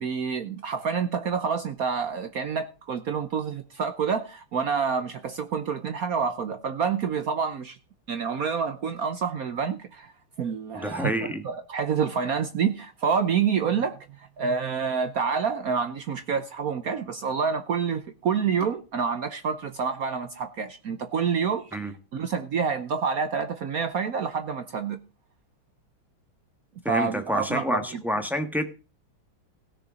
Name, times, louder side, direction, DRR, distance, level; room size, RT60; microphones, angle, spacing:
voice 1, 0.0-7.8 8.1-10.1 10.4-25.0 26.9-28.0, right 6 dB, 60° right, 0.9 m, -28 dB
voice 2, 10.7-11.4 21.7-21.9 26.8-28.6, equal, ahead, 0.9 m, -28 dB
16.5 x 6.8 x 4.9 m
omnidirectional pair, 2.3 m